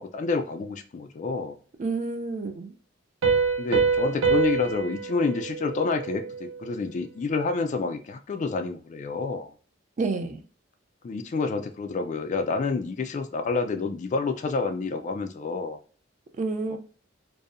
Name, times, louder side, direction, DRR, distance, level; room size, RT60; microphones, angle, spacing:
voice 1, 0.0-1.6 3.6-9.5 11.0-15.8 16.7-16.8, left 4 dB, 40° left, 7 dB, 0.3 m, -28 dB
voice 2, 1.8-2.7 10.0-10.4 16.4-16.8, right 3 dB, 40° right, 6 dB, 0.4 m, -29 dB
Piano, 3.2-6.6, right 5 dB, 85° right, 0.6 m, -26 dB
2.6 x 2.0 x 2.4 m, 0.41 s
head